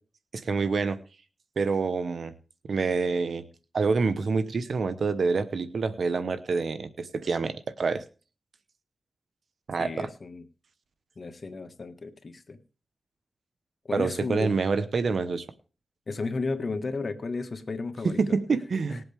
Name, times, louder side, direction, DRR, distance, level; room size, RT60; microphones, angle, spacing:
voice 1, 0.3-1.0 1.6-2.3 2.7-3.4 3.7-8.0 9.7-10.1 13.9-15.4 18.0-19.0, right 4 dB, 75° right, 13 dB, 0.9 m, -27 dB
voice 2, 9.8-10.4 11.2-12.6 13.9-14.5 16.1-18.2 18.9-19.1, left 3 dB, 60° left, 8 dB, 1.6 m, -33 dB
19.5 x 7.8 x 3.5 m, 0.36 s
cardioid pair, 50°, 0 cm